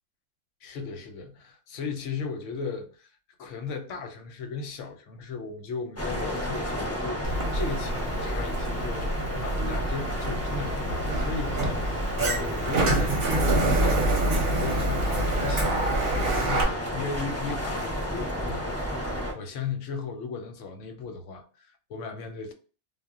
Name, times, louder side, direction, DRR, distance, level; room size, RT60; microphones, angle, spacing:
voice 1, 0.6-3.1 3.4-9.1 9.4-14.2 14.5-22.5, left 5 dB, 90° left, 1.0 m, -36 dB
sound 1, 6.0-19.3, equal, 20° left, 0.4 m, -32 dB
Sliding door, 7.2-16.6, right 2 dB, 55° right, 0.7 m, -27 dB
2.1 x 2.1 x 3.5 m
omnidirectional pair, 1.2 m